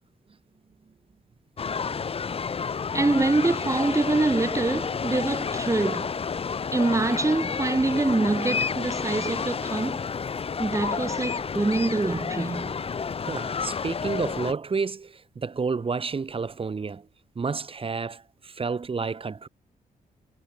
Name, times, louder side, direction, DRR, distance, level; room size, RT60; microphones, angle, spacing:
sound 1, 1.6-14.5, left 6 dB, 35° left, 0.9 m, -30 dB
voice 1, 2.9-6.2 6.7-10.0 10.6-12.8, right 2 dB, 20° right, 3.3 m, -25 dB
voice 2, 13.3-17.1 17.4-19.5, right 5 dB, 35° right, 1.6 m, -30 dB
cardioid pair, 85°, 16 cm